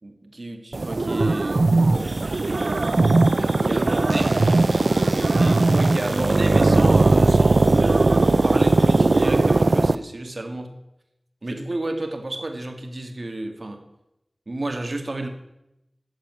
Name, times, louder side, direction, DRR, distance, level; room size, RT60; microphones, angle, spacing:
voice 1, 0.0-1.6 1.9-2.3 3.0-4.3 5.4-10.7 11.4-13.8 14.5-15.3, right 2 dB, 60° right, 5 dB, 2.2 m, -31 dB
sound 1, 0.7-9.9, right 3 dB, 80° right, 0.6 m, -18 dB
sound 2, 1.9-9.2, right 1 dB, 25° right, 3.3 m, -44 dB
voice 2, 3.6-6.5, left 1 dB, 35° left, 2 dB, 3.7 m, -42 dB
15.0 x 7.3 x 9.8 m, 0.87 s
wide cardioid pair, 45°, 0 cm